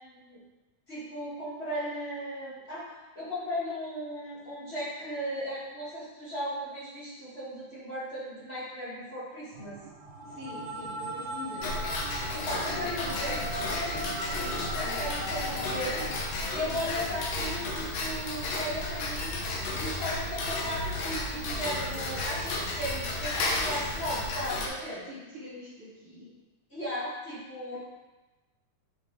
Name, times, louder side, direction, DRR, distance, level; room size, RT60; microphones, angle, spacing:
voice 1, 0.0-0.4 0.9-2.8 3.1-9.8 12.3-16.1 16.5-19.4 19.8-25.1 26.7-27.8, equal, 20° left, -10 dB, 2.1 m, -36 dB
sound 1, 9.5-16.0, right 1 dB, 75° right, 2.5 m, -38 dB
voice 2, 10.2-11.8 24.8-26.4 27.7-27.8, left 2 dB, 45° right, -8 dB, 3.0 m, -44 dB
Tick-tock, 11.6-24.7, left 2 dB, 65° left, 2.0 m, -33 dB
sound 2, 12.2-17.2, left 3 dB, 80° left, 2.6 m, -44 dB
7.9 x 6.3 x 3.3 m, 1.2 s
omnidirectional pair, 3.6 m